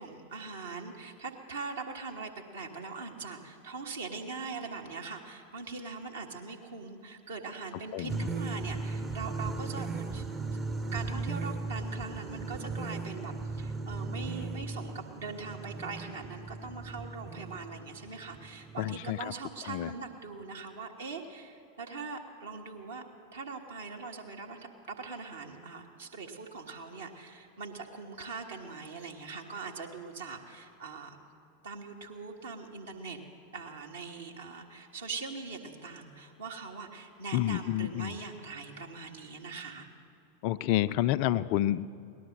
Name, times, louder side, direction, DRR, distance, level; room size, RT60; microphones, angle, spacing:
voice 1, 0.0-10.2 10.7-23.0 23.3-31.2 31.6-33.2 33.5-39.9, right 4 dB, 65° right, 0 dB, 1.5 m, -41 dB
voice 2, 7.9-8.3 18.8-19.3 19.7-19.9 37.3-38.2 40.4-41.9, left 13 dB, 45° left, 15 dB, 0.4 m, -29 dB
sound 1, 8.1-19.0, right 3 dB, 15° right, 0.7 m, -37 dB
18.5 x 11.5 x 6.6 m, 2.6 s
figure-of-eight pair, 90°, 0 cm